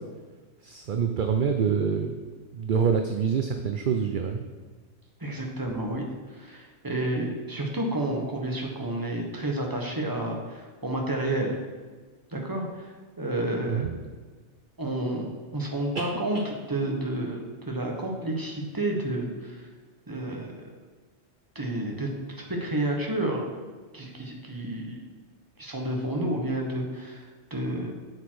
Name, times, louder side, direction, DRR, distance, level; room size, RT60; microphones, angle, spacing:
voice 1, 0.6-2.2 2.5-4.4 13.7-13.9 15.9-16.1 16.3-16.4, right 6 dB, 55° right, 5 dB, 0.7 m, -26 dB
voice 2, 5.2-6.0 6.3-11.6 12.3-12.9 13.2-14.1 14.8-19.7 20.1-20.8 21.5-22.1 22.4-23.4 23.9-25.0 25.6-27.9, right 1 dB, 20° right, 0 dB, 1.3 m, -30 dB
7.7 x 7.1 x 4.7 m, 1.4 s
omnidirectional pair, 1.3 m